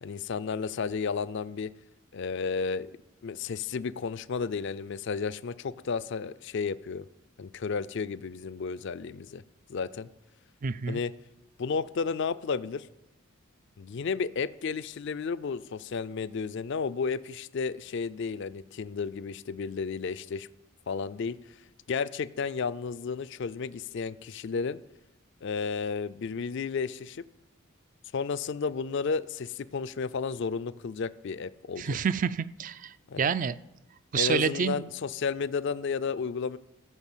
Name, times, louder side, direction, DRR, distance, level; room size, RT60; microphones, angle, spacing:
voice 1, 0.0-1.7 2.1-2.9 3.2-7.1 7.4-9.4 9.7-10.1 10.9-11.1 11.6-12.9 13.8-20.5 20.9-21.4 21.9-24.8 25.4-27.2 28.1-32.0 33.1-33.3 34.2-36.6, left 5 dB, 55° left, 15 dB, 0.4 m, -32 dB
voice 2, 10.6-11.0 31.8-33.5 34.1-34.8, right 6 dB, 40° right, 16 dB, 0.3 m, -28 dB
14.5 x 5.3 x 7.3 m, 0.91 s
head